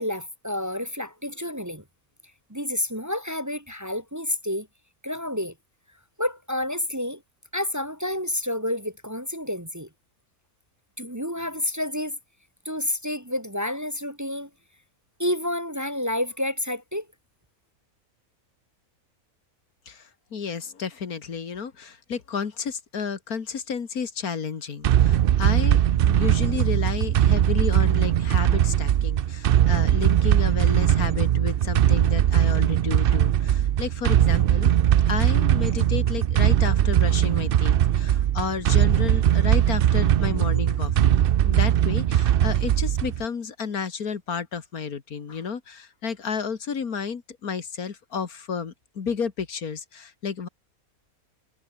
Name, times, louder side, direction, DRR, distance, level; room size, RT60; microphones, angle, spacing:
voice 1, 0.0-1.8 2.5-4.7 5.0-5.5 6.2-7.2 7.5-9.9 11.0-12.2 12.6-14.5 15.2-17.1, left 1 dB, 10° right, 1.4 m, -29 dB
voice 2, 19.9-34.7 35.1-50.5, left 6 dB, 80° left, 2.2 m, -32 dB
sound 1, 24.8-43.3, right 11 dB, 65° right, 0.5 m, -20 dB
omnidirectional pair, 1.5 m